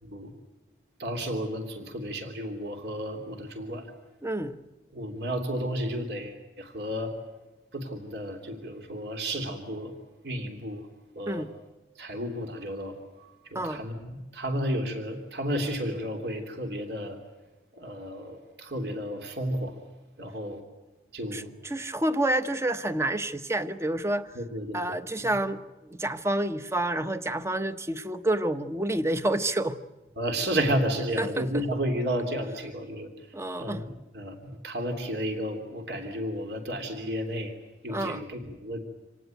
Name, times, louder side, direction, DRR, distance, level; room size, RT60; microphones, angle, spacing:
voice 1, 1.0-3.9 4.9-7.1 7.7-9.9 10.2-10.9 11.1-11.5 12.0-17.2 17.7-19.8 20.2-20.6 21.1-21.5 24.3-25.4 30.2-33.3 33.6-37.5 37.8-38.8, equal, 65° right, 5 dB, 3.2 m, -32 dB
voice 2, 4.2-4.6 11.3-11.5 13.5-13.9 21.3-24.3 24.7-25.6 25.9-29.8 31.2-31.5 33.3-33.8 37.9-38.2, right 1 dB, 15° right, 10 dB, 1.0 m, -28 dB
27.0 x 18.5 x 9.3 m, 1.1 s
head